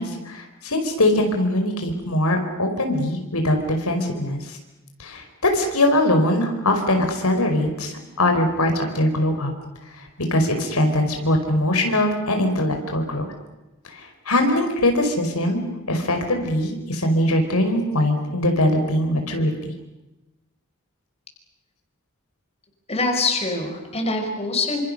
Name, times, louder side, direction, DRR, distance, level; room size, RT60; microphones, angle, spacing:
voice 1, 0.0-4.4 5.0-9.5 10.3-13.2 14.3-15.6 15.9-19.5, left 1 dB, 85° left, 4 dB, 4.8 m, -21 dB
voice 2, 22.9-24.8, left 3 dB, 30° left, 4 dB, 4.8 m, -24 dB
28.0 x 26.5 x 6.6 m, 1.0 s
head